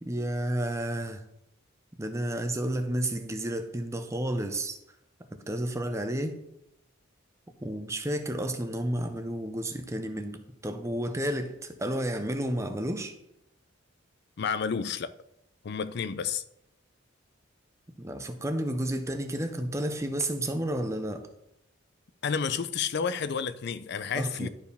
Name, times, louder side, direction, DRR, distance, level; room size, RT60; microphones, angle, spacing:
voice 1, 0.0-1.2 2.0-4.8 5.3-6.4 7.6-13.1 18.0-21.3 24.1-24.5, right 1 dB, 15° right, 0.7 m, -31 dB
voice 2, 14.4-15.1 15.6-16.4 22.2-24.5, left 6 dB, 55° left, 0.4 m, -30 dB
11.5 x 4.7 x 3.4 m
head